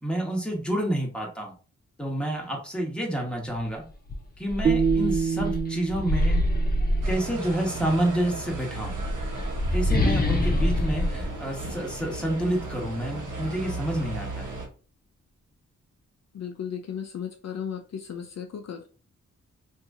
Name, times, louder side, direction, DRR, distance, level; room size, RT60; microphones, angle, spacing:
voice 1, 0.0-1.5 2.0-3.8 4.4-6.4 7.0-8.9 9.7-14.5, right 1 dB, 5° left, -1 dB, 1.2 m, -29 dB
sound 1, 3.6-3.7 4.1-7.7 8.7-12.3, left 1 dB, 30° left, 0.8 m, -26 dB
sound 2, 4.6-7.8, right 6 dB, 25° right, 0.4 m, -28 dB
sound 3, 7.0-14.7, right 2 dB, 85° right, 1.0 m, -36 dB
voice 2, 16.3-18.9, left 8 dB, 60° left, 6 dB, 0.5 m, -35 dB
2.9 x 2.6 x 3.6 m, 0.37 s
wide cardioid pair, 100°, 30 cm